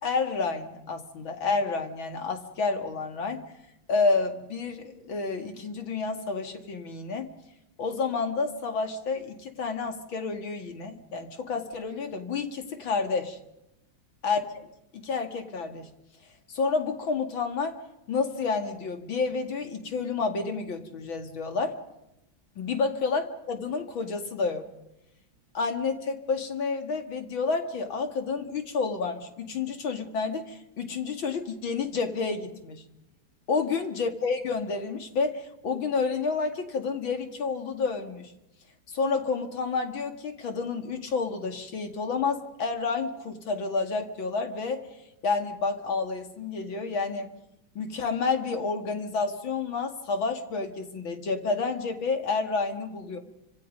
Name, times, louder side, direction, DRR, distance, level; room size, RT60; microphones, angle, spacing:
voice 1, 0.0-3.4 3.9-7.3 7.8-13.4 14.2-14.4 14.9-15.9 16.5-17.8 18.1-21.8 22.6-24.7 25.5-32.8 33.5-38.3 38.9-44.8 45.2-47.3 47.7-53.2, left 4 dB, 85° left, 5 dB, 3.0 m, -29 dB
29.0 x 26.0 x 5.4 m, 0.90 s
omnidirectional pair, 2.1 m